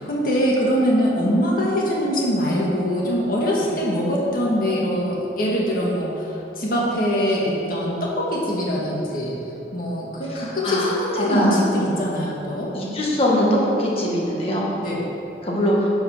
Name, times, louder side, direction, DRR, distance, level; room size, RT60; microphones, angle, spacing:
voice 1, 0.0-9.4 9.7-12.7 14.8-15.0, equal, 50° left, -4 dB, 1.9 m, -23 dB
voice 2, 12.7-14.7 15.4-15.9, equal, 35° left, -4 dB, 1.7 m, -21 dB
10.5 x 5.7 x 5.8 m, 2.9 s
head